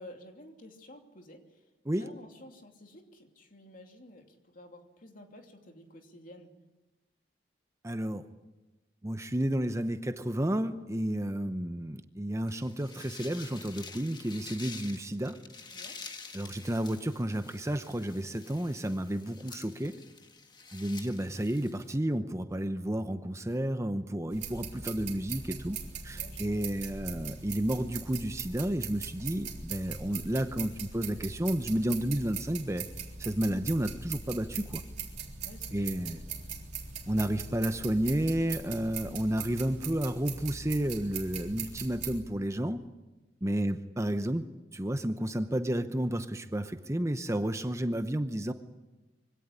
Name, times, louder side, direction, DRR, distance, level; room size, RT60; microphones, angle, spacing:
voice 1, 0.0-1.6 2.0-6.5 15.7-16.0 26.1-26.7 35.4-36.7 43.4-43.6, left 1 dB, 50° left, 4 dB, 2.8 m, -52 dB
voice 2, 7.8-8.3 9.0-15.4 16.3-20.0 20.7-25.8 26.0-32.9 33.2-34.8 35.7-36.2 37.1-42.8 43.4-44.5 44.7-48.5, right 1 dB, 15° right, 9 dB, 0.8 m, -31 dB
sound 1, 12.5-22.0, left 4 dB, 25° left, 1.5 m, -48 dB
sound 2, 24.3-42.2, right 6 dB, 45° right, 3.8 m, -41 dB
24.0 x 17.5 x 10.0 m, 1.1 s
head